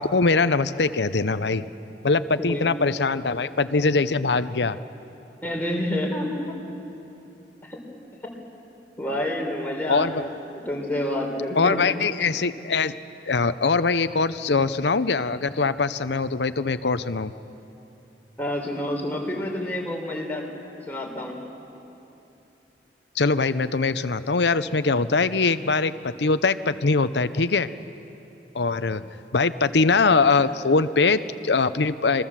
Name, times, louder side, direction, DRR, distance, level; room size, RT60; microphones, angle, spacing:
voice 1, 0.0-1.7 2.0-4.8 9.9-10.2 11.6-12.9 13.3-17.3 23.1-27.7 28.5-32.2, left 4 dB, 70° left, 13 dB, 0.8 m, -22 dB
voice 2, 5.4-6.6 7.6-7.8 8.2-8.4 9.0-11.8 18.4-20.5 20.8-21.4, left 1 dB, 10° left, -1 dB, 4.1 m, -29 dB
28.0 x 22.0 x 7.5 m, 2.9 s
head